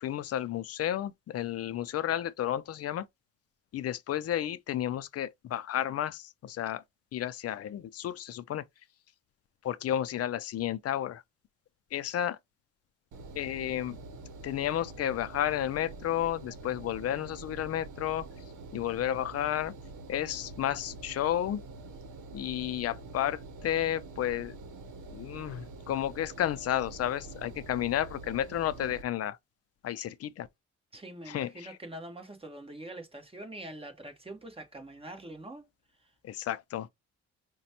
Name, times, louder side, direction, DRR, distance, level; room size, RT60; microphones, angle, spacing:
voice 1, 0.0-3.1 3.7-6.8 7.1-8.6 9.6-11.2 11.9-12.4 13.4-14.0 14.4-18.3 18.7-19.7 20.1-21.6 22.3-24.6 25.1-29.4 29.8-30.5 31.3-31.8 36.2-36.9, left 11 dB, 55° left, 0.5 m, -32 dB
Engine, 13.1-29.0, right 3 dB, 80° right, 0.8 m, -46 dB
voice 2, 30.9-35.7 36.0-36.1, right 1 dB, 20° right, 1.2 m, -44 dB
5.0 x 2.2 x 2.8 m
cardioid pair, 90°, 30 cm